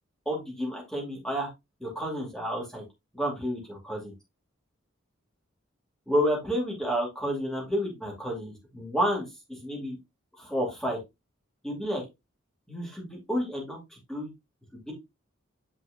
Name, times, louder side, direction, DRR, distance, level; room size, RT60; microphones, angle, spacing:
voice 1, 0.3-1.5 1.8-2.8 3.1-4.1 6.1-10.0 10.4-11.0 11.6-12.0 12.7-14.3 14.9-15.0, equal, 5° left, -1 dB, 2.7 m, -30 dB
8.7 x 5.2 x 2.6 m, 0.22 s
head